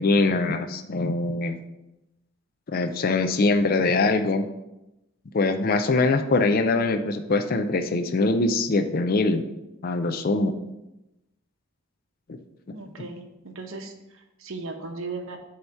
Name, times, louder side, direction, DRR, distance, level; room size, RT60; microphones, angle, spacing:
voice 1, 0.0-1.6 2.7-4.4 5.3-9.4 9.8-10.5 12.3-12.4, left 3 dB, 45° left, 7 dB, 0.4 m, -23 dB
voice 2, 12.7-15.4, right 3 dB, 70° right, 4 dB, 0.9 m, -37 dB
7.8 x 2.9 x 5.6 m, 0.93 s
head